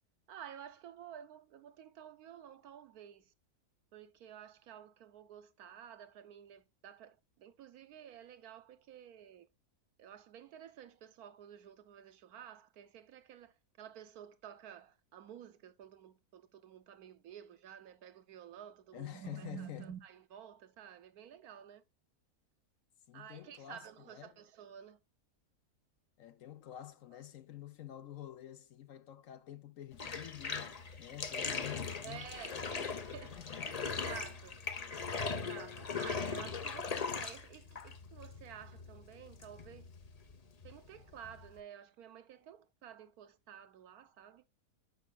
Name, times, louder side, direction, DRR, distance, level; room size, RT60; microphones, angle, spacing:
voice 1, 0.3-3.3 3.9-9.5 10.0-21.8 23.1-25.0 32.0-34.6 35.3-39.9 40.6-44.4, right 9 dB, 75° right, 1.3 m, -52 dB
voice 2, 18.9-19.9 23.1-24.4 26.2-32.6 33.3-34.1, left 12 dB, 65° left, 1.0 m, -49 dB
Bathtub (filling or washing), 29.9-41.6, left 5 dB, 40° left, 0.6 m, -40 dB
10.0 x 7.2 x 2.3 m
omnidirectional pair, 1.6 m